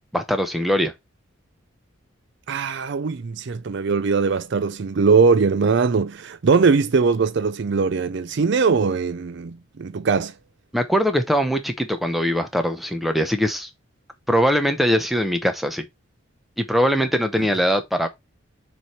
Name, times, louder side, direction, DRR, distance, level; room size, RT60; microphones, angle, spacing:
voice 1, 0.1-0.9 10.7-13.7 14.3-15.8 16.6-18.1, equal, ahead, 0.8 m, -21 dB
voice 2, 2.5-10.3, right 5 dB, 55° right, 0.4 m, -20 dB
6.8 x 3.5 x 4.4 m
head